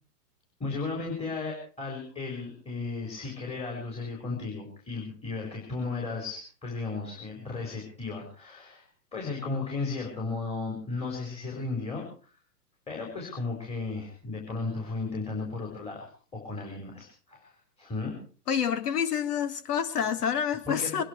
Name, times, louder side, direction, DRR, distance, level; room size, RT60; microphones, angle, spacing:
voice 1, 0.6-8.9 9.1-12.4 12.9-18.2 20.7-21.0, left 3 dB, 10° left, 4.8 m, -35 dB
voice 2, 18.5-21.0, left 8 dB, 70° left, 2.4 m, -28 dB
23.5 x 11.5 x 4.7 m
hypercardioid pair, 135°, 47 cm